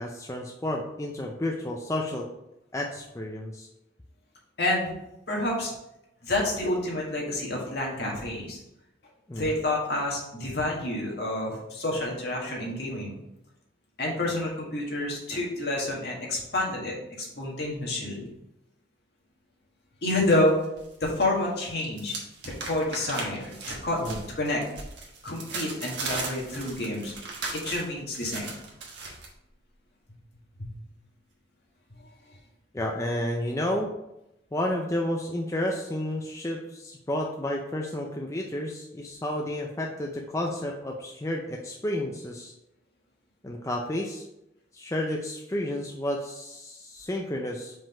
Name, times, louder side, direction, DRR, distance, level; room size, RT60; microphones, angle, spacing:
voice 1, 0.0-2.3 2.7-3.7 9.3-9.5 24.0-24.2 32.7-33.9 34.5-42.5 43.4-44.2 44.7-47.7, left 1 dB, 15° left, 0 dB, 0.4 m, -31 dB
voice 2, 4.6-4.9 5.3-5.7 6.2-8.6 9.4-13.2 14.0-18.2 20.0-20.6 21.0-22.1 22.4-23.5 23.8-24.6 25.2-27.1 27.6-28.5 30.6-30.7, left 1 dB, 60° left, -2 dB, 1.7 m, -28 dB
sound 1, 20.3-21.1 21.4-29.3, right 3 dB, 75° right, 1.3 m, -38 dB
5.1 x 3.8 x 4.9 m, 0.87 s
head